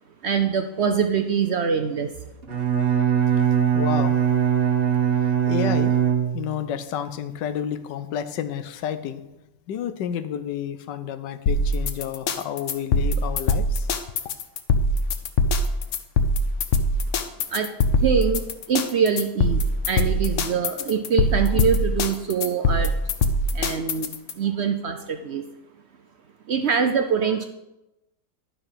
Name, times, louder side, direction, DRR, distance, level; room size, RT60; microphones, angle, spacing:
voice 1, 0.2-2.1 17.5-17.7 18.0-22.9 23.5-25.4 26.5-27.4, right 6 dB, 70° right, 7 dB, 0.6 m, -24 dB
Bowed string instrument, 2.4-6.7, right 9 dB, 35° right, 1.3 m, -21 dB
voice 2, 3.7-4.2 5.5-6.0 6.3-9.2 9.7-13.9, left 9 dB, 85° left, 12 dB, 1.3 m, -30 dB
sound 1, 11.5-24.3, left 2 dB, 60° left, 0.9 m, -22 dB
11.0 x 5.7 x 5.7 m, 0.95 s
omnidirectional pair, 1.8 m